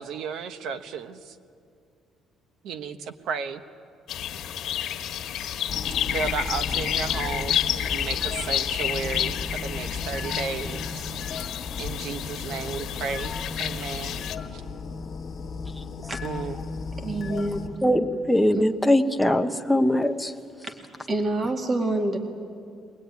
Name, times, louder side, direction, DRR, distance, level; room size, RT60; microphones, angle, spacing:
voice 1, 0.0-1.3 2.6-3.6 6.1-11.4 11.8-13.3 13.6-14.3 14.5-14.6 16.2-16.6, right 6 dB, 65° right, 10 dB, 1.2 m, -34 dB
sound 1, 4.1-14.4, left 11 dB, 65° left, 1.5 m, -30 dB
sound 2, 5.7-17.7, left 4 dB, 35° left, 1.2 m, -35 dB
voice 2, 17.0-17.7 18.5-18.7 20.6-20.7 21.1-22.2, right 2 dB, 25° right, 4 dB, 2.1 m, -27 dB
voice 3, 17.8-20.3, left 1 dB, ahead, 4 dB, 0.8 m, -21 dB
23.0 x 20.0 x 9.5 m, 2.4 s
cardioid pair, 155°, 0 cm